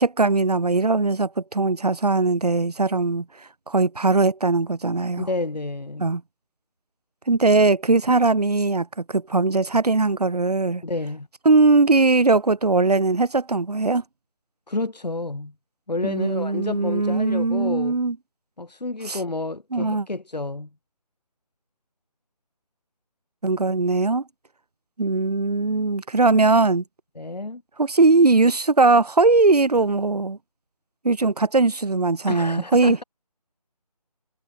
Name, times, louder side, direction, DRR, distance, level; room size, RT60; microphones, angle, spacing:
voice 1, 0.0-3.3 3.7-5.3 6.0-6.2 7.3-10.8 11.5-14.0 16.0-18.2 19.1-19.2 19.7-20.1 23.4-24.2 25.0-26.8 27.8-30.4 31.0-33.0, right 3 dB, 70° right, 3.5 m, -20 dB
voice 2, 5.2-6.1 10.8-11.3 14.7-15.5 15.9-18.0 18.6-20.7 27.2-27.6 32.3-33.0, left 2 dB, 90° left, 4.7 m, -30 dB
figure-of-eight pair, 170°, 21 cm